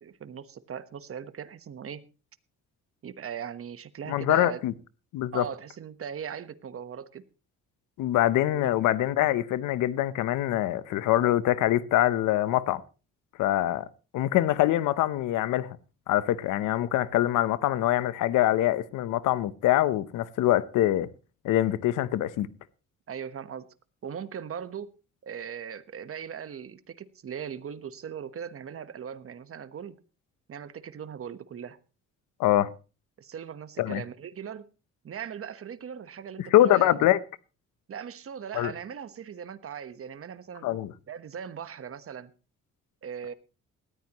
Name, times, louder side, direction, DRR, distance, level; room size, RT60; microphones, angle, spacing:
voice 1, 0.0-2.0 3.0-4.6 5.3-7.2 8.5-8.7 23.1-23.7 24.0-24.9 25.2-30.0 30.5-31.8 33.2-34.7 35.0-37.1 37.9-40.7 41.1-42.3 43.0-43.3, right 8 dB, 45° right, 1.2 m, -39 dB
voice 2, 4.1-4.7 5.1-5.4 8.0-12.8 13.4-13.9 14.1-15.7 16.1-21.1 21.4-22.5 32.4-32.7 33.8-34.0 36.5-37.2 38.5-38.7 40.6-40.9, left 14 dB, 90° left, 0.9 m, -24 dB
19.0 x 14.0 x 3.1 m
cardioid pair, 90°, 30 cm